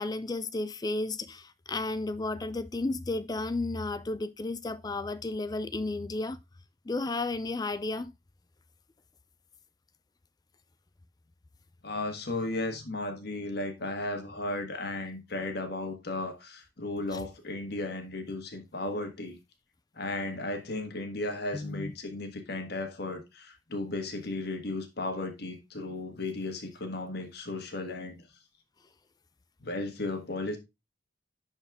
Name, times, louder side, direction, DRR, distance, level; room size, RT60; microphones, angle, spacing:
voice 1, 0.0-6.4 6.9-8.1 17.1-17.2 21.5-21.9, left 2 dB, 20° left, 0.4 m, -33 dB
voice 2, 11.8-19.4 20.0-28.2 29.6-30.6, left 2 dB, 60° left, 1.5 m, -35 dB
10.5 x 4.4 x 3.5 m
head